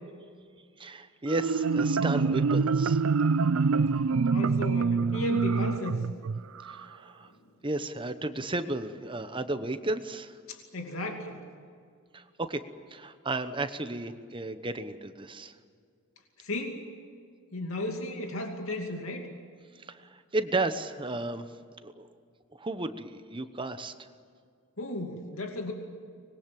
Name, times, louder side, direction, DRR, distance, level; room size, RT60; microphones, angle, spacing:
voice 1, 0.8-3.0 6.6-7.3 7.6-10.3 12.1-12.6 12.9-15.5 19.9-21.5 21.8-22.1 22.6-23.9, right 2 dB, 25° right, 10 dB, 1.0 m, -33 dB
Marimba xylophone, 1.3-6.8, right 4 dB, 85° right, 0.5 m, -25 dB
voice 2, 4.3-6.0 10.5-11.4 16.4-16.8 17.5-19.3 24.8-25.7, left 1 dB, 80° left, 3 dB, 2.6 m, -34 dB
25.0 x 21.5 x 7.7 m, 2.2 s
head